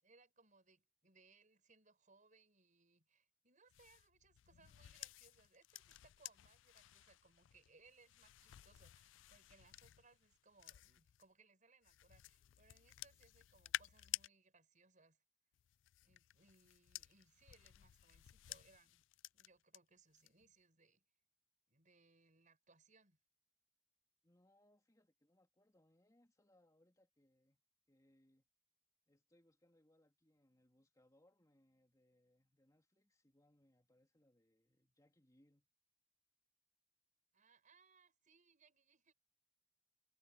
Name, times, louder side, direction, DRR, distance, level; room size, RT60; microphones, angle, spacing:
voice 1, 0.0-15.2 16.0-19.0 19.3-21.0 21.7-23.2 37.3-39.1, right 4 dB, 40° right, 6.5 m, -70 dB
sound 1, 3.7-11.3 11.8-14.3 15.5-19.8 20.2-20.5, left 14 dB, 70° left, 0.3 m, -52 dB
voice 2, 24.2-27.6 27.9-28.5 29.1-35.7, left 1 dB, 20° left, 2.8 m, -74 dB
head